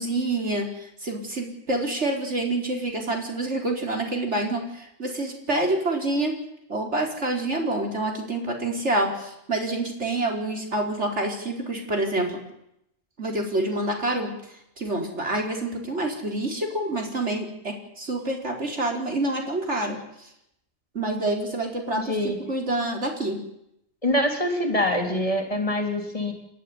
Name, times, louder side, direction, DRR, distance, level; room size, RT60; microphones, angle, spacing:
voice 1, 0.0-6.3 6.7-12.4 13.2-14.4 14.8-20.0 20.9-23.4, right 2 dB, 85° right, 2 dB, 4.7 m, -27 dB
voice 2, 21.9-22.4 24.0-26.3, left 1 dB, 30° left, 4 dB, 3.8 m, -25 dB
29.5 x 11.5 x 9.9 m, 0.80 s
omnidirectional pair, 1.1 m